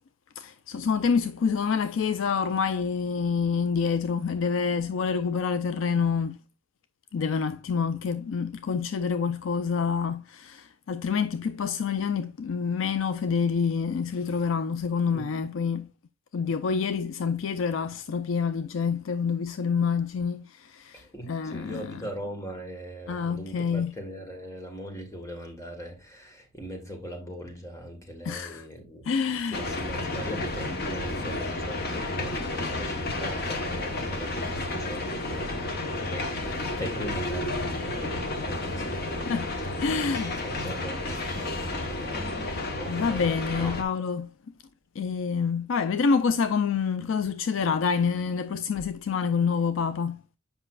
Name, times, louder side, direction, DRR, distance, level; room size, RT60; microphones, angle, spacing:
voice 1, 0.4-6.4 7.1-15.9 16.3-21.9 23.1-23.9 28.2-28.6 29.1-29.6 39.3-39.5 39.8-40.4 42.9-44.3 45.0-50.2, left 5 dB, 70° left, 0.4 m, -27 dB
voice 2, 20.9-29.1 29.3-43.8, equal, 15° left, 1.6 m, -40 dB
sound 1, 29.5-43.8, left 2 dB, 50° left, 1.1 m, -31 dB
7.8 x 5.5 x 2.4 m
head